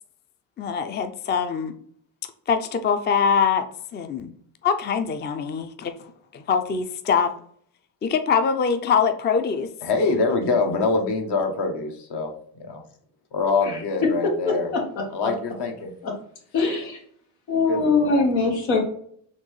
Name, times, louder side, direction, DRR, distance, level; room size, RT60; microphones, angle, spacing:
voice 1, 0.6-1.7 2.5-3.7 3.9-4.3 4.6-7.3 8.0-9.7, left 6 dB, 25° left, 8 dB, 0.4 m, -23 dB
voice 2, 9.8-12.3 12.6-12.8 13.3-14.7 15.1-15.9 17.7-18.1, left 3 dB, 60° left, 4 dB, 1.1 m, -24 dB
voice 3, 14.4-15.0 16.0-16.1 16.5-17.0 17.5-18.8, left 4 dB, 85° left, 0 dB, 1.4 m, -22 dB
4.3 x 3.0 x 3.1 m, 0.62 s
supercardioid pair, 65°, 46 cm